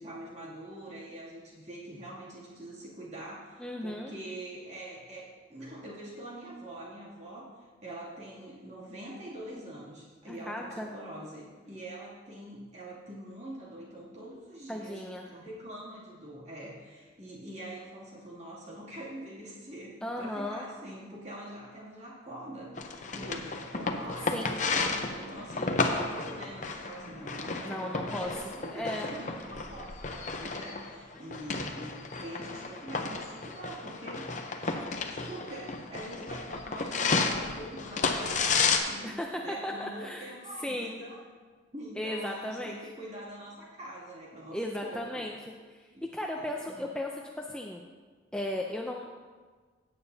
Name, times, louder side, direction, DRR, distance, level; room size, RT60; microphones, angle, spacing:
voice 1, 0.0-34.3 34.6-39.1 39.4-41.2 41.7-45.3 45.9-46.1 46.3-46.9, right 1 dB, 35° right, -6 dB, 2.6 m, -44 dB
voice 2, 3.6-4.1 10.3-10.9 14.7-15.3 20.0-20.7 24.3-24.6 27.7-28.3 28.7-29.1 39.0-40.3 40.6-41.0 42.0-42.8 44.5-45.4 45.7-47.8 48.3-49.1, left 1 dB, 5° left, 0 dB, 0.5 m, -36 dB
sound 1, 22.8-38.8, left 4 dB, 40° left, 0.7 m, -32 dB
16.5 x 8.8 x 2.8 m, 1.5 s
head